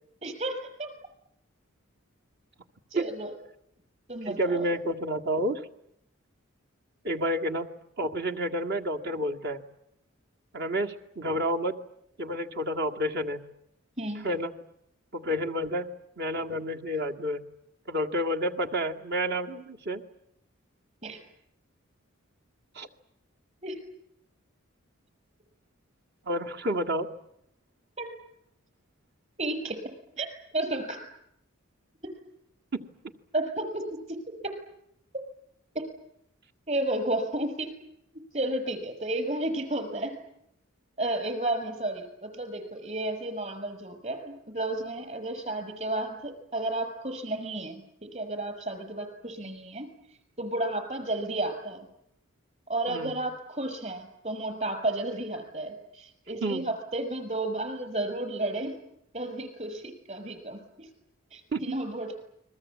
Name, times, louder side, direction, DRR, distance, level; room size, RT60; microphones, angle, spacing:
voice 1, 0.2-1.0 2.9-3.3 4.1-4.6 14.0-14.3 21.0-21.2 23.6-23.8 28.0-28.1 29.4-30.3 30.5-31.0 32.0-32.1 33.3-34.0 34.4-34.5 35.7-35.9 36.7-37.7 38.3-40.2 41.0-49.9 50.4-51.9 52.7-58.8 59.1-60.9 61.3-62.1, right 1 dB, 35° right, 7 dB, 6.3 m, -32 dB
voice 2, 4.2-5.7 7.0-7.7 8.0-9.6 10.5-11.8 12.2-13.4 14.2-14.5 15.1-15.9 16.2-17.4 17.9-20.0 22.8-22.9 26.3-27.1 32.7-32.9 52.9-53.2 56.4-56.7 61.5-61.7, equal, 50° right, 3 dB, 2.0 m, -29 dB
29.5 x 22.0 x 8.6 m, 0.76 s
head